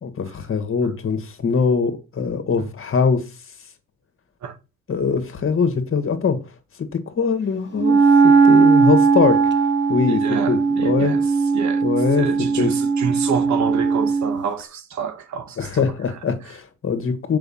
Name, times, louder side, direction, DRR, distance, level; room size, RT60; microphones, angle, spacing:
voice 1, 0.0-3.2 4.9-6.4 6.8-8.0 8.2-9.4 9.9-10.2 10.5-11.1 11.8-12.3 12.6-12.7 15.6-17.4, left 5 dB, 45° left, 1.8 m, -22 dB
Wind instrument woodwind instrument, 7.8-14.4, right 5 dB, 40° right, 0.9 m, -18 dB
voice 2, 10.1-16.2, right 7 dB, 70° right, 1.4 m, -29 dB
6.8 x 5.5 x 5.6 m
cardioid pair, 90°, 30 cm